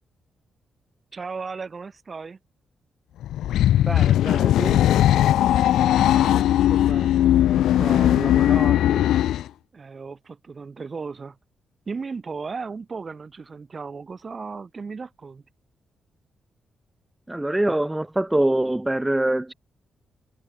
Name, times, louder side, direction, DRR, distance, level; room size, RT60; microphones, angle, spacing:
voice 1, 1.1-2.4 6.1-9.1 9.7-11.4 11.9-15.4, right 4 dB, 40° right, 1.4 m, -35 dB
sound 1, 3.2-9.5, left 12 dB, 90° left, 0.4 m, -19 dB
voice 2, 3.8-4.8 17.3-19.5, right 1 dB, 10° right, 0.8 m, -24 dB
Bowed string instrument, 4.7-9.4, left 1 dB, 10° left, 4.9 m, -46 dB
cardioid pair, 80°, 0 cm